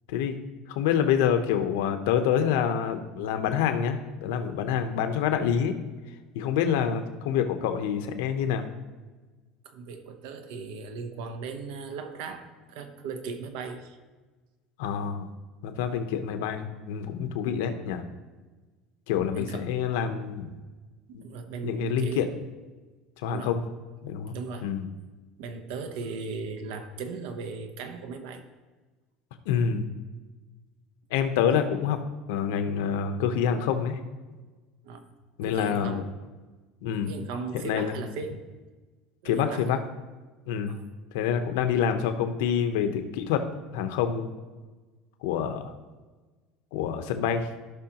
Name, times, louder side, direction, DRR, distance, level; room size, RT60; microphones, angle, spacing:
voice 1, 0.7-5.7 6.3-8.6 14.8-15.3 15.6-18.0 19.1-20.5 21.1-21.2 21.6-22.3 23.2-23.6 24.0-24.3 24.6-24.8 29.5-29.9 31.1-32.0 32.3-34.0 35.4-36.0 36.8-37.1 37.6-37.9 39.2-39.8 40.5-40.7 41.1-43.4 43.7-44.3 45.2-45.7 46.7-47.5, left 8 dB, 85° left, 8 dB, 0.9 m, -27 dB
voice 2, 9.6-14.0 19.3-19.9 21.1-22.3 23.3-23.6 24.3-24.7 25.4-28.4 34.8-35.0 35.4-36.1 37.1-38.4 39.2-39.8 40.7-40.9, right 4 dB, 70° right, 8 dB, 1.0 m, -37 dB
15.5 x 5.7 x 2.9 m, 1.3 s
cardioid pair, 170°, 0 cm